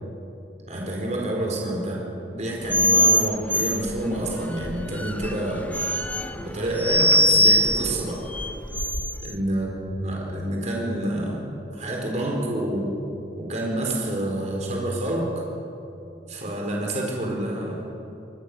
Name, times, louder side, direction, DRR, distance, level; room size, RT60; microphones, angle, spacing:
voice 1, 0.7-5.7 6.3-8.2 9.2-9.7 10.0-12.9 13.4-15.3 16.3-17.9, right 1 dB, 40° right, -1 dB, 4.4 m, -28 dB
sound 1, 2.7-9.3, equal, 10° left, 0.8 m, -23 dB
27.0 x 20.5 x 6.7 m, 2.8 s
head